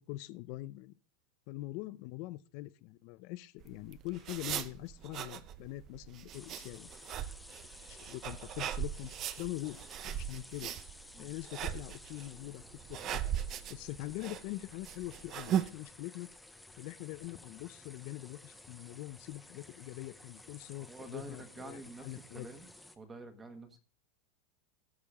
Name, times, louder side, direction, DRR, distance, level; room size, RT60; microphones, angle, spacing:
voice 1, 0.1-0.9 1.5-6.9 7.9-9.1 9.4-9.8 10.0-10.7 11.2-12.6 12.9-13.3 13.7-16.3 16.8-22.5, left 18 dB, 45° left, 17 dB, 0.6 m, -43 dB
sound 1, 3.6-15.7, right 10 dB, 30° right, 0.6 m, -39 dB
sound 2, 6.3-23.0, left 2 dB, 5° left, 0.8 m, -54 dB
voice 2, 20.8-22.7 23.0-23.8, right 3 dB, 15° right, 8 dB, 1.4 m, -48 dB
18.5 x 6.7 x 3.6 m, 0.37 s
supercardioid pair, 160°, 0 cm